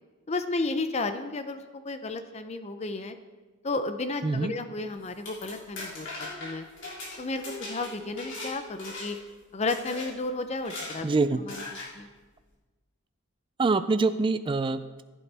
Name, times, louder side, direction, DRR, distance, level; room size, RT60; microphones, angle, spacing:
voice 1, 0.3-3.2 3.6-6.6 7.2-9.2 9.5-11.1 11.4-11.6 11.9-12.1, left 3 dB, 30° left, 9 dB, 0.6 m, -32 dB
sound 1, 5.0-8.5 8.8-9.3 9.7-10.1 10.6-11.0 11.5-11.9, left 2 dB, 55° left, 3.3 m, -39 dB
voice 2, 11.0-11.4 13.6-15.0, right 3 dB, 25° right, 12 dB, 0.3 m, -25 dB
15.0 x 8.5 x 3.4 m, 1.3 s
head